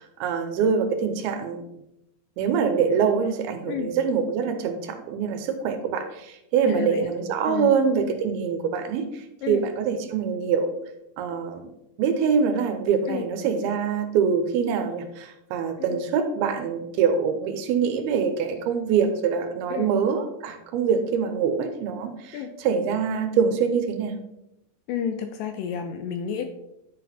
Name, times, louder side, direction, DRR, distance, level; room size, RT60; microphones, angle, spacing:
voice 1, 0.0-1.7 2.4-10.7 11.2-11.7 12.0-24.2, right 6 dB, 80° right, 7 dB, 2.7 m, -24 dB
voice 2, 6.6-7.2 7.5-7.8 9.4-9.6 13.1-13.3 19.7-19.9 22.3-22.5 24.9-26.4, left 8 dB, 80° left, 7 dB, 2.0 m, -30 dB
10.5 x 4.2 x 4.2 m, 0.86 s
omnidirectional pair, 4.4 m